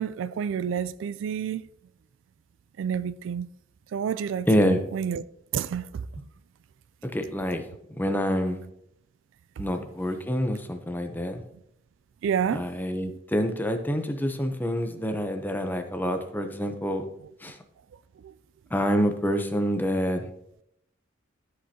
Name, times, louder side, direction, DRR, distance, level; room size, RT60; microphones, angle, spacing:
voice 1, 0.0-1.6 2.8-3.5 3.9-5.2 5.5-6.0 12.2-12.6 13.0-13.1, right 8 dB, 75° right, 0.3 m, -29 dB
voice 2, 4.5-4.8 7.0-7.6 8.0-8.6 9.6-11.4 12.5-17.0 17.4-17.5 18.7-20.2, equal, 10° left, 0.7 m, -27 dB
13.0 x 5.2 x 2.8 m
head